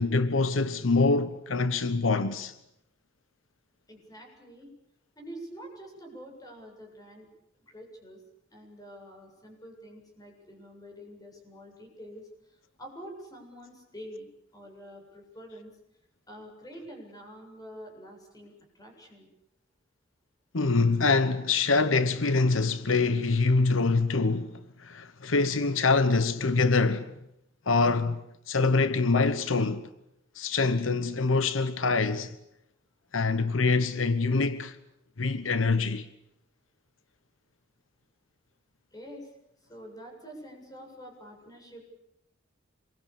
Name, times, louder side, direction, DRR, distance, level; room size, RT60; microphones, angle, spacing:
voice 1, 0.0-2.5 20.5-27.1 27.7-28.2 28.5-29.9 30.3-32.3 33.1-34.8 35.2-36.1, left 3 dB, 85° left, 1.1 m, -25 dB
voice 2, 3.9-4.7 5.2-7.3 7.6-8.2 8.5-14.3 14.5-15.7 16.3-19.3 38.9-39.3 39.7-41.8, equal, 20° left, 7.6 m, -46 dB
26.5 x 22.5 x 8.5 m
head